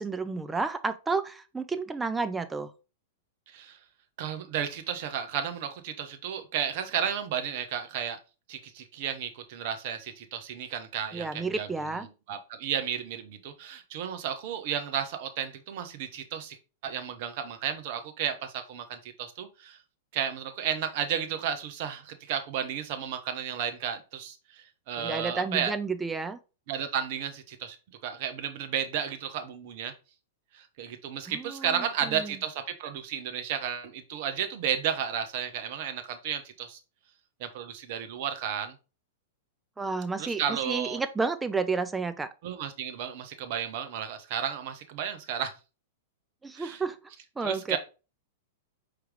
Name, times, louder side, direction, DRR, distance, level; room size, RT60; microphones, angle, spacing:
voice 1, 0.0-2.7 11.1-12.1 25.0-26.4 31.3-32.3 39.8-42.3 46.4-47.0 47.4-47.8, right 4 dB, 10° right, 0.5 m, -31 dB
voice 2, 3.5-3.8 4.2-8.2 8.5-11.7 12.3-16.6 16.8-19.8 20.1-25.8 26.7-27.8 28.0-29.9 30.5-36.8 37.4-38.7 40.2-41.0 42.4-45.5 46.5-46.8 47.4-47.8, right 8 dB, 50° right, 0.8 m, -33 dB
4.6 x 3.3 x 3.5 m
figure-of-eight pair, 100°, 0 cm